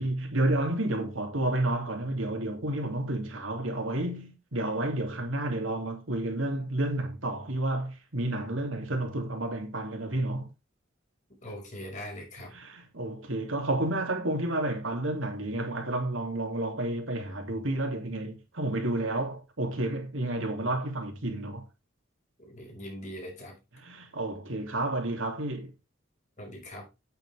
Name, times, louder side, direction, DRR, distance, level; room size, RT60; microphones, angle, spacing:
voice 1, 0.0-10.5 12.5-21.6 23.8-25.7, right 1 dB, 90° right, 3.0 m, -30 dB
voice 2, 11.4-12.5 22.4-23.6 26.4-26.9, equal, 40° left, 6.0 m, -41 dB
9.1 x 9.0 x 3.6 m
head